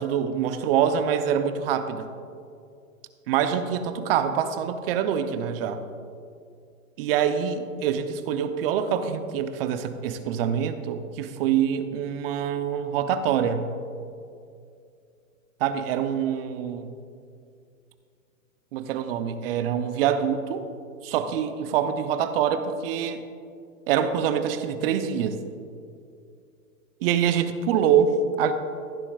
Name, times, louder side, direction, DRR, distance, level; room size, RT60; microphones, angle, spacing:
voice 1, 0.0-2.1 3.3-5.8 7.0-13.7 15.6-16.9 18.7-20.7 21.0-23.2 23.9-25.4 27.0-28.5, right 8 dB, 40° right, 9 dB, 0.7 m, -25 dB
15.0 x 9.7 x 2.4 m, 2.4 s
hypercardioid pair, 135°, 43 cm